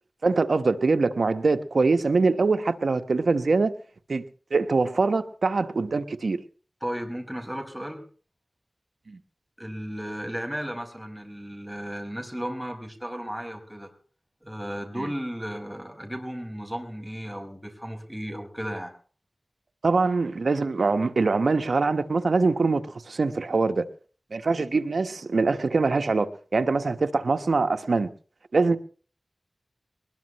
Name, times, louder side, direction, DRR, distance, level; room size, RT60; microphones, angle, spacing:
voice 1, 0.2-3.7 4.1-4.2 4.5-6.4 9.1-9.2 15.0-15.1 19.8-23.8 24.3-28.1 28.5-28.8, right 3 dB, 85° right, 1.2 m, -23 dB
voice 2, 6.8-8.1 9.6-13.9 14.4-18.9, equal, 5° right, 5.0 m, -34 dB
22.0 x 20.5 x 3.1 m
wide cardioid pair, 45°, 0 cm